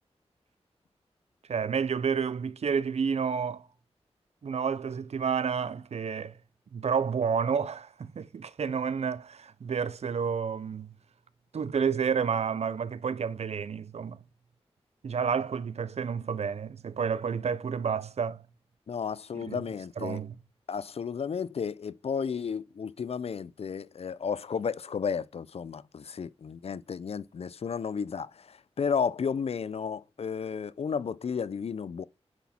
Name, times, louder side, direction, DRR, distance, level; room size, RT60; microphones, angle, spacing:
voice 1, 1.5-3.7 4.4-6.4 6.7-10.9 11.5-14.2 15.0-18.4 19.3-19.6 20.0-20.3, right 6 dB, 80° right, 0.5 m, -30 dB
voice 2, 18.9-20.2 20.7-32.0, left 6 dB, 65° left, 0.4 m, -33 dB
9.7 x 6.1 x 4.2 m
wide cardioid pair, 95°, 11 cm